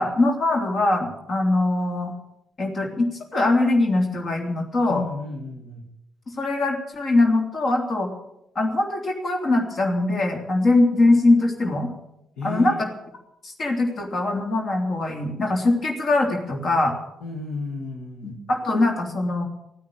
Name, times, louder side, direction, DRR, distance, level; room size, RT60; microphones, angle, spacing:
voice 1, 0.0-2.1 2.6-5.0 6.4-8.1 8.5-11.9 12.4-12.9 13.4-16.9 18.2-19.4, left 2 dB, 45° left, 3 dB, 3.1 m, -22 dB
voice 2, 4.9-5.9 12.4-12.8 17.2-18.4, left 3 dB, 65° left, -2 dB, 2.1 m, -32 dB
16.0 x 9.4 x 8.8 m, 0.83 s
figure-of-eight pair, 40°, 0 cm